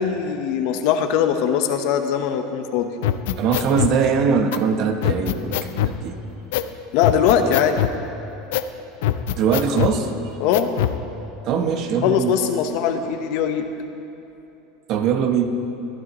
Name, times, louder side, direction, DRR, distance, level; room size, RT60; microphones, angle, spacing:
voice 1, 0.0-2.9 6.9-7.8 10.4-10.7 12.0-13.6, left 8 dB, 65° left, 7 dB, 0.9 m, -21 dB
sound 1, 3.0-4.0 4.5-4.6 5.0-6.0 6.5-6.7 7.0-8.0 8.5-8.7 9.0-10.0 10.5-11.0, left 12 dB, 80° left, 0.5 m, -23 dB
voice 2, 3.4-6.2 9.4-10.1 11.4-12.4 14.9-15.6, right 6 dB, 50° right, 7 dB, 1.0 m, -21 dB
21.5 x 11.5 x 3.1 m, 2.9 s
supercardioid pair, 130°, 0 cm